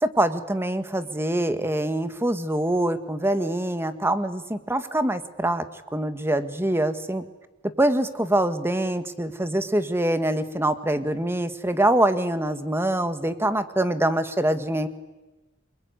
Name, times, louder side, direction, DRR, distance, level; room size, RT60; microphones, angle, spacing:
voice 1, 0.0-5.6 5.9-7.2 7.8-14.9, right 1 dB, 10° right, 10 dB, 1.7 m, -24 dB
28.0 x 22.0 x 9.6 m, 1.1 s
head